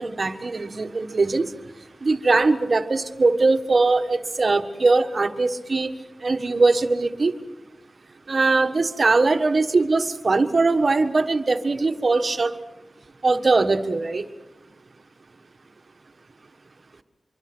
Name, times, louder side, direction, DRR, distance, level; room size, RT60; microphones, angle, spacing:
voice 1, 0.0-1.5 2.0-5.9 6.2-7.3 8.3-12.5 13.2-14.2, right 3 dB, 55° right, 8 dB, 1.5 m, -21 dB
25.0 x 24.0 x 6.2 m, 1.1 s
cardioid pair, 60°, 0 cm